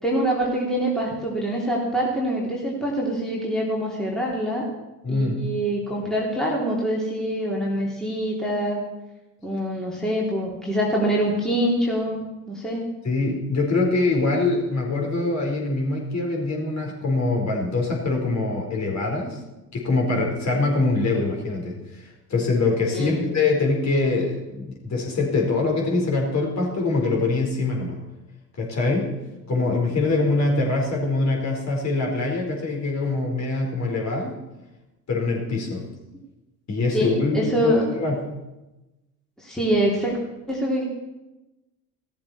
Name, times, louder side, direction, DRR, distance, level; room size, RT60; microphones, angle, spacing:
voice 1, 0.0-4.6 5.1-8.8 9.4-12.8 22.9-23.3 36.9-37.9 39.4-40.2 40.5-40.8, right 1 dB, ahead, -4 dB, 3.2 m, -25 dB
voice 2, 5.0-5.4 13.0-19.4 19.7-28.0 28.6-29.1 29.5-34.3 35.1-35.8 36.7-38.2, left 3 dB, 35° left, 0 dB, 4.6 m, -24 dB
17.0 x 13.5 x 4.3 m, 1.0 s
figure-of-eight pair, 65°, 50 cm